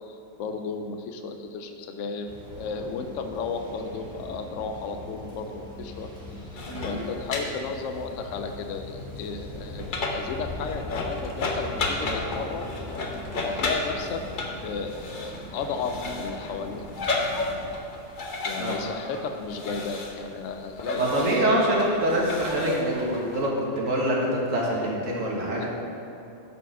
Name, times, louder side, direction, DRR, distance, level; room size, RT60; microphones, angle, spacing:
voice 1, 0.1-2.3 2.6-6.1 6.5-12.7 13.4-14.3 14.6-16.9 18.4-21.5 25.6-25.7, left 4 dB, 75° left, 6 dB, 0.9 m, -34 dB
sound 1, 2.2-17.8, left 1 dB, 40° right, 2.5 m, -40 dB
sound 2, 6.6-23.5, left 3 dB, 45° left, 0.9 m, -33 dB
voice 2, 6.7-7.0 12.0-12.2 18.5-18.8 20.9-25.7, right 1 dB, 75° right, -4 dB, 1.8 m, -25 dB
9.1 x 4.7 x 6.0 m, 2.9 s
omnidirectional pair, 1.4 m